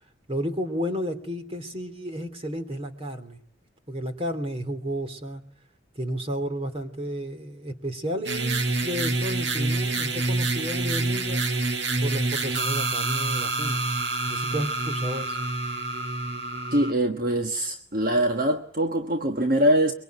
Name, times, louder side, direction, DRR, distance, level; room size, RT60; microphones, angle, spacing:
voice 1, 0.3-3.4 3.9-5.4 6.0-11.4 12.0-13.8 14.3-15.4, equal, 30° right, 2.9 m, -32 dB
sound 1, 8.2-16.9, right 2 dB, 65° right, 1.8 m, -27 dB
voice 2, 16.7-19.9, right 1 dB, 45° right, 1.4 m, -23 dB
24.0 x 23.5 x 9.3 m
head